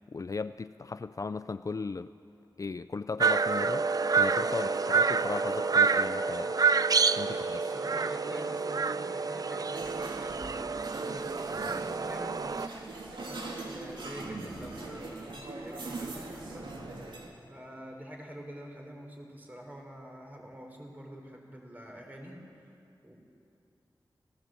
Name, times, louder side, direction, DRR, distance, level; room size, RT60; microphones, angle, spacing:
voice 1, 0.1-2.1 2.6-3.8 4.1-6.5 7.2-7.7, left 4 dB, 45° left, 12 dB, 0.4 m, -36 dB
sound 1, 3.2-12.7, right 5 dB, 50° right, 0.5 m, -28 dB
voice 2, 7.5-16.7 17.5-22.7 23.0-23.1, equal, 20° right, 1 dB, 4.0 m, -46 dB
sound 2, 9.7-17.3, right 2 dB, 90° right, 2.7 m, -41 dB
26.5 x 16.5 x 7.8 m, 2.6 s
wide cardioid pair, 105°, 8 cm